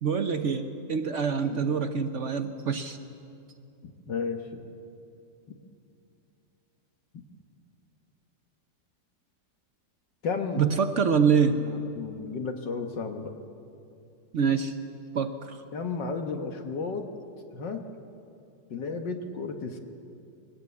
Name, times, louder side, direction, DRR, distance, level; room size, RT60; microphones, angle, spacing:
voice 1, 0.0-3.0 10.6-11.6 14.3-14.7 15.1-15.6, right 6 dB, 55° right, 8 dB, 0.9 m, -25 dB
voice 2, 4.1-4.6 10.2-10.6 11.5-13.3 15.7-17.1 17.5-17.8 18.7-19.8, left 4 dB, 75° left, 5 dB, 2.0 m, -33 dB
22.5 x 18.5 x 8.4 m, 2.6 s
omnidirectional pair, 1.9 m